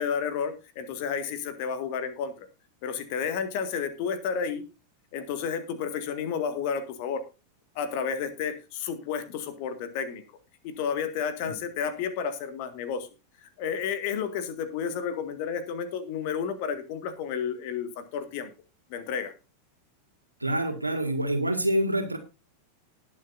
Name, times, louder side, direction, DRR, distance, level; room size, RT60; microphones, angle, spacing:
voice 1, 0.0-2.5 2.8-4.6 5.1-7.2 7.8-10.2 10.6-13.1 13.4-18.5 18.9-19.3, left 7 dB, 45° left, 10 dB, 2.0 m, -31 dB
voice 2, 20.4-22.2, right 1 dB, 85° right, 6 dB, 2.1 m, -26 dB
19.5 x 7.3 x 2.7 m, 0.29 s
figure-of-eight pair, 90°, 0 cm